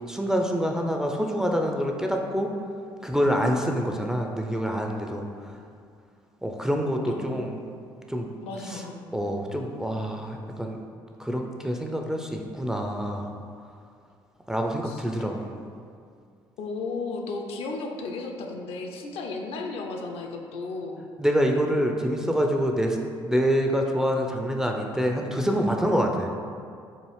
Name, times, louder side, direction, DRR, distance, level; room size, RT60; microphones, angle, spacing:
voice 1, 0.1-2.5 3.0-5.3 6.4-7.6 8.1-8.3 8.7-8.8 9.1-10.8 11.2-13.3 14.5-15.5 21.2-23.0 23.3-26.3, equal, 5° right, 1 dB, 0.4 m, -26 dB
voice 2, 7.1-7.4 8.4-9.0 14.8-15.0 16.6-21.1, left 3 dB, 55° left, 2 dB, 0.4 m, -34 dB
4.7 x 2.4 x 3.1 m, 2.2 s
figure-of-eight pair, 50°, 12 cm